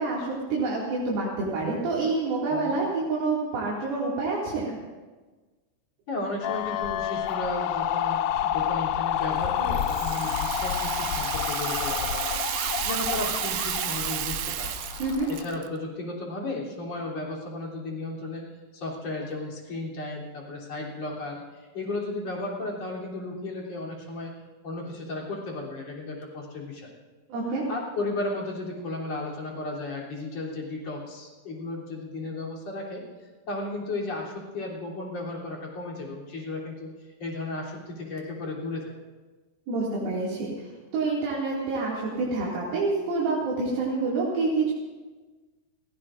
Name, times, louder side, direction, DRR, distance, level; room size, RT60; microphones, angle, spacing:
voice 1, 0.0-4.8 15.0-15.3 27.3-27.6 39.7-44.7, right 3 dB, 70° right, -5 dB, 4.2 m, -27 dB
voice 2, 6.1-12.4 12.8-14.7 15.3-24.3 24.6-26.9 27.5-33.1 33.5-36.9 37.2-38.9, left 2 dB, 45° left, -3 dB, 4.1 m, -34 dB
sound 1, 6.4-15.4, left 9 dB, 85° left, 1.8 m, -29 dB
Rattle (instrument), 9.7-15.7, right 12 dB, 90° right, 1.7 m, -32 dB
30.0 x 16.5 x 2.5 m, 1.3 s
omnidirectional pair, 4.4 m